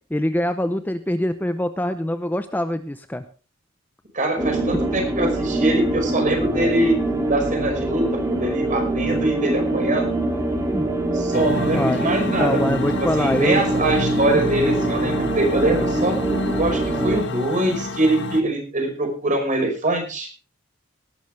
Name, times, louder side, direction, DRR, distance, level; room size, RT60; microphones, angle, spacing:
voice 1, 0.1-3.2 10.7-10.9 11.7-13.6 14.3-14.4, left 1 dB, 10° left, 10 dB, 0.6 m, -24 dB
voice 2, 4.1-6.9 7.3-10.1 11.1-12.6 13.2-16.2 16.6-20.3, right 1 dB, 40° right, 4 dB, 5.3 m, -23 dB
sound 1, 4.4-17.2, right 2 dB, 15° right, 3.2 m, -24 dB
sound 2, 11.3-18.4, left 2 dB, 60° left, 1.7 m, -29 dB
18.5 x 12.0 x 3.4 m, 0.35 s
head